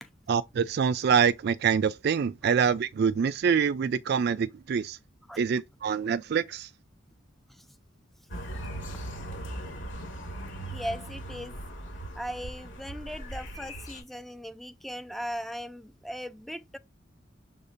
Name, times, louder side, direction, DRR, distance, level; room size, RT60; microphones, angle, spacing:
voice 1, 0.3-5.0 5.4-6.7, right 6 dB, 55° right, 0.3 m, -25 dB
sound 1, 8.3-14.0, right 1 dB, 70° left, 2.7 m, -39 dB
voice 2, 10.7-11.6 12.2-16.8, equal, ahead, 0.5 m, -38 dB
7.1 x 2.7 x 5.0 m
head